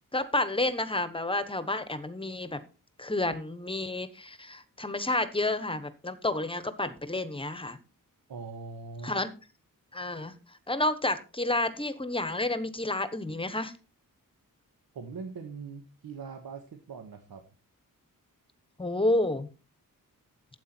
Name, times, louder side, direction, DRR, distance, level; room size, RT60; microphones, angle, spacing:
voice 1, 0.1-2.6 3.0-7.8 9.0-9.3 9.9-10.3 10.7-13.7 18.8-19.5, left 2 dB, 15° left, 12 dB, 1.0 m, -30 dB
voice 2, 8.3-9.2 14.9-17.4, right 5 dB, 85° right, 5 dB, 1.5 m, -41 dB
12.5 x 8.7 x 4.4 m, 0.34 s
wide cardioid pair, 175°, 35 cm